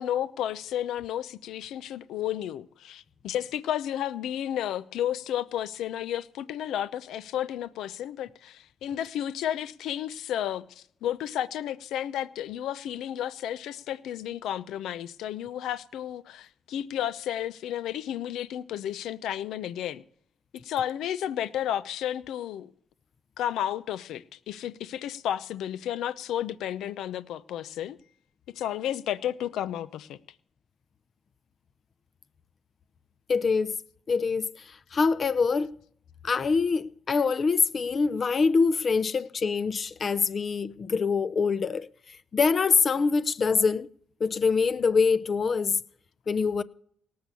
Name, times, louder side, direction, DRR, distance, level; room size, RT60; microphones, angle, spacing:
voice 1, 0.0-20.0 20.5-22.7 23.4-28.0 28.5-30.2, left 11 dB, 85° left, 0.7 m, -32 dB
voice 2, 33.3-33.8 34.1-34.6 34.9-35.7 36.2-41.9 42.3-43.9 44.2-45.8 46.3-46.6, left 5 dB, 40° left, 0.7 m, -24 dB
18.5 x 6.7 x 7.0 m
cardioid pair, 90°, 0 cm